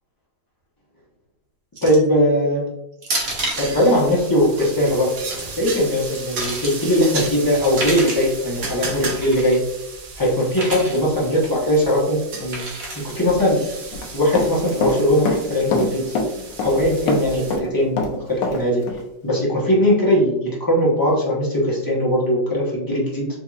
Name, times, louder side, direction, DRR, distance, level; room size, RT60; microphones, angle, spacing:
voice 1, 1.8-2.6 3.6-5.1 5.6-9.6 10.2-12.6 13.0-13.6 14.1-16.0 16.6-18.8 19.2-23.3, equal, 20° left, -5 dB, 0.6 m, -19 dB
sound 1, 1.8-2.1 3.0-3.7 5.1-5.4 6.0-6.8 7.6-8.3 9.2-9.6 10.5-11.0 12.5-13.1, right 2 dB, 45° right, 1.0 m, -29 dB
sound 2, 3.2-17.6, right 3 dB, 75° right, 1.5 m, -34 dB
Run, 13.9-15.0 15.2-16.8 17.1-18.6 18.9-19.0, left 3 dB, 75° left, 1.3 m, -24 dB
4.4 x 2.9 x 2.3 m, 0.90 s
omnidirectional pair, 2.0 m